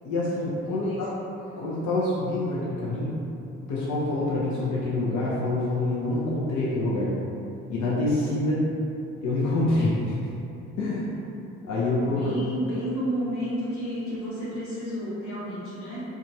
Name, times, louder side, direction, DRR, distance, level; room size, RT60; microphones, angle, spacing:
voice 1, 0.0-1.1 1.6-3.2 3.7-7.1 7.7-8.6 9.2-10.2 10.8-11.1 11.7-12.4, left 2 dB, 60° left, -7 dB, 0.7 m, -26 dB
voice 2, 0.7-1.1 12.1-16.0, equal, 80° left, -9 dB, 1.0 m, -31 dB
3.8 x 2.3 x 2.7 m, 2.8 s
hypercardioid pair, 50°, 34 cm